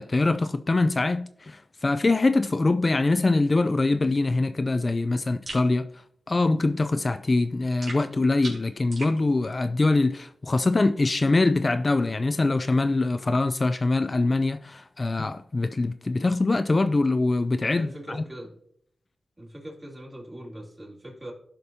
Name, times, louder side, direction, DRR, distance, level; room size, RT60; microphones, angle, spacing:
voice 1, 0.0-5.9 6.3-18.2, left 2 dB, 40° left, 0.4 m, -23 dB
sound 1, 5.4-5.7 7.8-9.2, right 2 dB, 65° right, 2.6 m, -39 dB
voice 2, 17.7-18.6 19.4-21.3, right 1 dB, 30° right, 2.8 m, -41 dB
13.5 x 5.1 x 2.8 m
cardioid pair, 50°, 0 cm